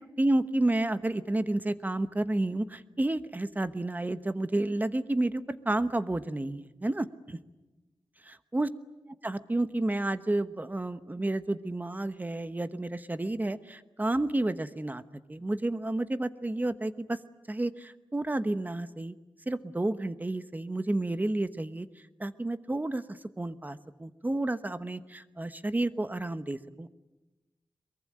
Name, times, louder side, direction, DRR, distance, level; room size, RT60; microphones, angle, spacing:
voice 1, 0.2-7.4 8.5-8.7 9.2-15.0 15.3-17.2 17.5-19.1 19.5-21.9 22.2-26.9, right 2 dB, 20° right, 12 dB, 1.0 m, -30 dB
23.0 x 23.0 x 10.0 m, 1.1 s
wide cardioid pair, 125°, 9 cm